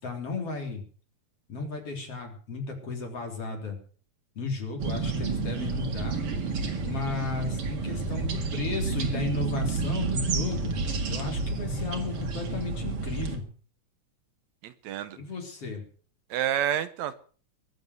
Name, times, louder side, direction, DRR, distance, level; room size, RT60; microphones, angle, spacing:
voice 1, 0.0-0.8 1.5-3.8 4.4-6.2 6.8-10.7 11.1-13.4 15.2-15.9, left 4 dB, 50° left, 2 dB, 4.7 m, -34 dB
sound 1, 4.8-13.4, right 4 dB, 50° right, 2.7 m, -30 dB
voice 2, 14.6-15.2 16.3-17.1, right 10 dB, 75° right, 12 dB, 2.0 m, -29 dB
21.5 x 8.0 x 6.6 m, 0.43 s
omnidirectional pair, 3.4 m